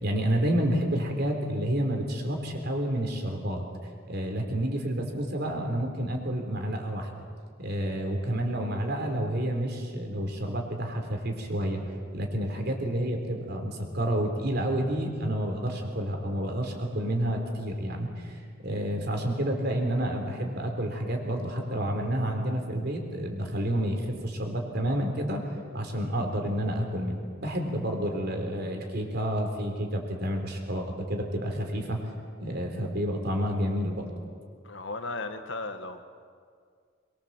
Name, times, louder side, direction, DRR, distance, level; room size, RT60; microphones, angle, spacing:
voice 1, 0.0-3.6 4.1-7.1 7.6-11.8 12.1-25.5 25.7-32.1 32.4-34.1, right 1 dB, 50° right, 3 dB, 3.8 m, -29 dB
voice 2, 34.6-36.0, left 3 dB, 60° left, 7 dB, 1.6 m, -35 dB
23.5 x 23.0 x 7.5 m, 2.1 s
head